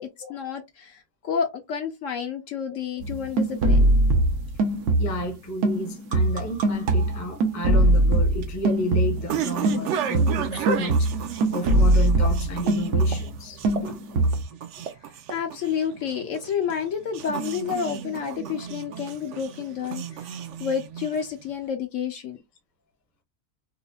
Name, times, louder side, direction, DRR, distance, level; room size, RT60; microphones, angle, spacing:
voice 1, 0.0-4.0 15.3-22.4, left 7 dB, 65° left, 0.9 m, -30 dB
sound 1, 3.0-5.3 5.6-9.4 9.6-13.4 13.7-14.4, right 1 dB, 85° right, 1.3 m, -22 dB
voice 2, 5.0-14.2, equal, 15° left, 0.6 m, -32 dB
sound 2, 8.0-21.5, right 8 dB, 65° right, 0.7 m, -33 dB
5.0 x 2.1 x 2.3 m
omnidirectional pair, 1.6 m